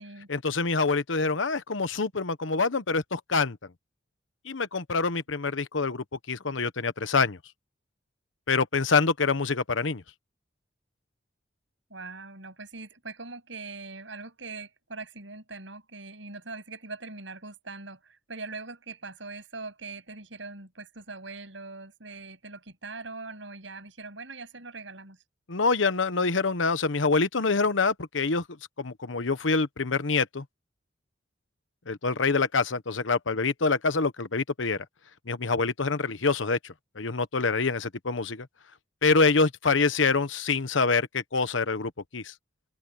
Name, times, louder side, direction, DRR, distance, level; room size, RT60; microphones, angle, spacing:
voice 1, 0.3-3.6 4.4-7.4 8.5-10.0 25.5-28.4 28.8-30.4 31.9-34.8 35.3-38.5 39.0-42.3, left 4 dB, 80° left, 1.1 m, -26 dB
voice 2, 11.9-25.2, right 3 dB, 75° right, 7.8 m, -42 dB
open air
head